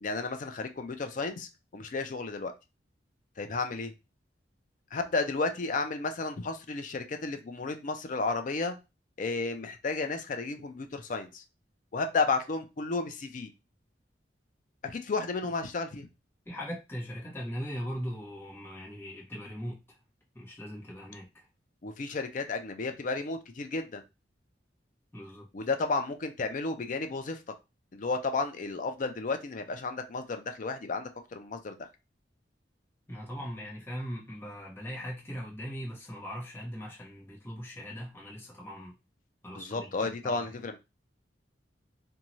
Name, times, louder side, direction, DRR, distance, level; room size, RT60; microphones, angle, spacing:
voice 1, 0.0-2.5 3.4-3.9 4.9-8.7 9.2-11.4 11.9-13.5 14.8-16.1 21.8-24.0 25.5-27.4 27.9-31.9 39.5-40.8, left 3 dB, 45° left, 7 dB, 0.4 m, -32 dB
voice 2, 16.4-19.8 20.3-21.5 25.1-25.5 33.1-38.9 39.4-40.5, equal, 15° left, -4 dB, 0.9 m, -40 dB
2.6 x 2.3 x 3.0 m, 0.25 s
head